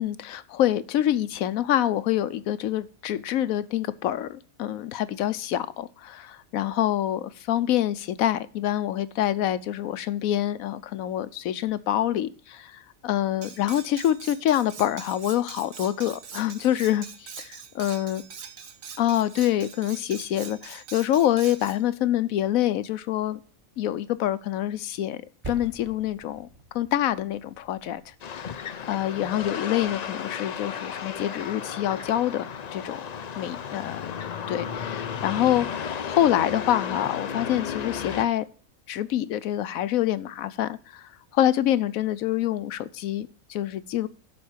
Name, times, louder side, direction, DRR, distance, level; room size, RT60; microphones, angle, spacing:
voice 1, 0.0-18.2 19.0-23.4 23.8-26.5 26.7-28.6 28.9-33.0 33.4-34.0 34.5-38.4 38.9-44.1, left 12 dB, 90° left, 1.1 m, -26 dB
Cutlery silverware, 13.4-21.8, right 6 dB, 75° right, 1.5 m, -43 dB
Percussion, 25.4-30.3, right 3 dB, 25° right, 1.1 m, -46 dB
sound 1, 28.2-38.3, left 7 dB, 60° left, 0.4 m, -34 dB
11.5 x 4.3 x 7.2 m
omnidirectional pair, 1.4 m